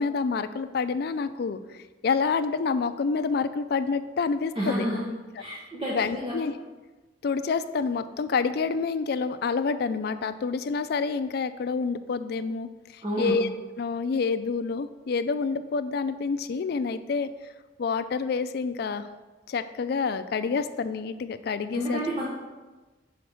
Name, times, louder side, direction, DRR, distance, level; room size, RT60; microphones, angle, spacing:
voice 1, 0.0-4.9 5.9-6.5 7.2-13.5 13.8-17.3 17.8-19.1 19.5-22.0, left 5 dB, 55° left, 11 dB, 0.4 m, -28 dB
voice 2, 4.6-5.0 5.4-6.3 13.0-13.4 21.7-22.3, equal, 30° right, -5 dB, 0.9 m, -29 dB
5.1 x 5.0 x 6.1 m, 1.2 s
head